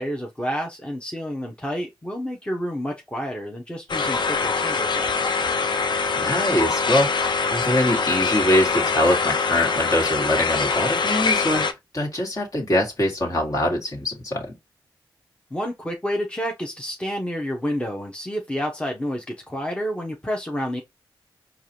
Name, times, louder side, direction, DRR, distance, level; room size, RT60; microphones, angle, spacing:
voice 1, 0.0-5.4 15.5-20.8, equal, 15° left, 0.9 m, -29 dB
sound 1, 3.9-11.7, left 4 dB, 60° left, 0.6 m, -23 dB
voice 2, 6.1-7.1 7.5-14.6, left 1 dB, 45° left, 1.8 m, -23 dB
4.7 x 2.5 x 2.8 m
cardioid pair, 45°, 9 cm